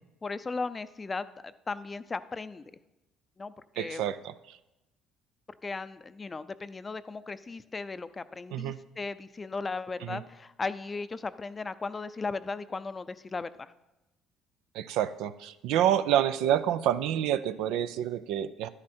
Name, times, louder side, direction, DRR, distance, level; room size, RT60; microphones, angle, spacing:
voice 1, 0.2-1.3 1.7-2.7 3.4-4.0 5.6-13.7, left 4 dB, 25° left, 14 dB, 0.5 m, -36 dB
voice 2, 3.8-4.6 8.5-8.8 10.0-10.2 14.7-18.7, right 11 dB, 80° right, 12 dB, 0.4 m, -28 dB
11.0 x 9.7 x 4.3 m, 0.97 s
supercardioid pair, 80°, 0 cm